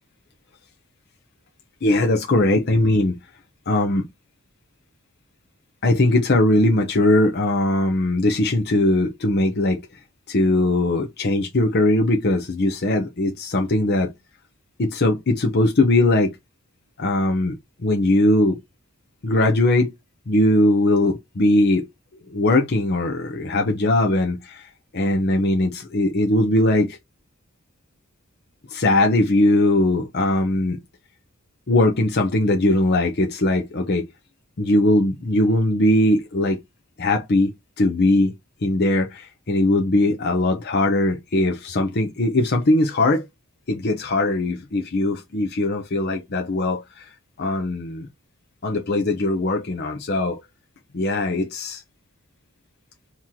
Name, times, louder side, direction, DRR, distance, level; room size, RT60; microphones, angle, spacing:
voice 1, 1.8-3.2 3.7-4.1 5.8-9.8 10.3-14.1 14.8-16.3 17.0-17.5 17.8-18.6 19.2-19.9 20.3-21.9 22.3-27.0 28.7-30.8 31.7-34.0 34.6-36.6 37.0-37.5 37.8-38.3 38.6-43.3 43.7-47.1 47.4-48.1 48.6-50.4 50.9-51.8, left 1 dB, 50° left, 0.7 m, -20 dB
3.0 x 2.9 x 3.7 m
head